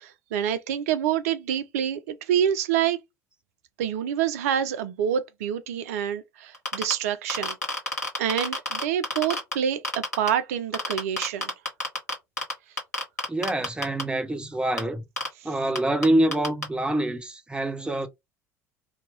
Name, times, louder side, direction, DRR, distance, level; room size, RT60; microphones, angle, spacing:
voice 1, 0.0-3.0 3.8-7.6 8.2-11.5 15.4-15.5, right 9 dB, 65° right, 0.5 m, -27 dB
sound 1, 6.5-6.9 7.3-9.5 9.8-10.3 10.7-12.5 12.8-14.0 14.8-14.9 15.2-15.3 15.7-15.8 16.0-16.1 16.3-16.6, left 1 dB, 85° left, 1.1 m, -27 dB
voice 2, 13.3-15.0 15.4-18.1, right 1 dB, 10° right, 0.6 m, -25 dB
2.8 x 2.2 x 3.8 m
figure-of-eight pair, 60°, 8 cm